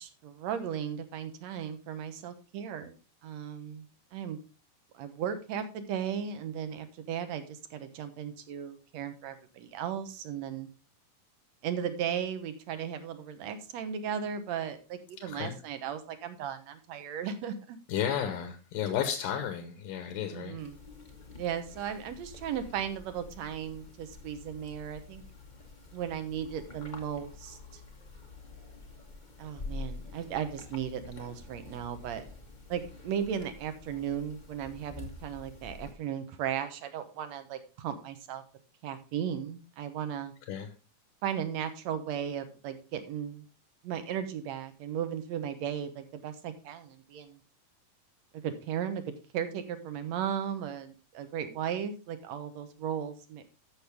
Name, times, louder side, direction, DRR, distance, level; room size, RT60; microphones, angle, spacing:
voice 1, 0.0-3.0 3.2-4.4 4.9-10.7 11.6-17.8 20.3-20.8 21.3-25.2 25.9-27.8 29.4-32.2 32.7-38.4 38.8-40.3 41.2-43.5 43.8-47.4 48.3-53.4, right 8 dB, 65° right, 9 dB, 2.0 m, -36 dB
voice 2, 15.2-15.5 17.9-20.6 40.4-40.7, left 9 dB, 80° left, 7 dB, 2.7 m, -33 dB
sound 1, 20.6-35.9, left 3 dB, 50° left, 0.5 m, -47 dB
13.5 x 6.4 x 3.5 m, 0.33 s
omnidirectional pair, 3.8 m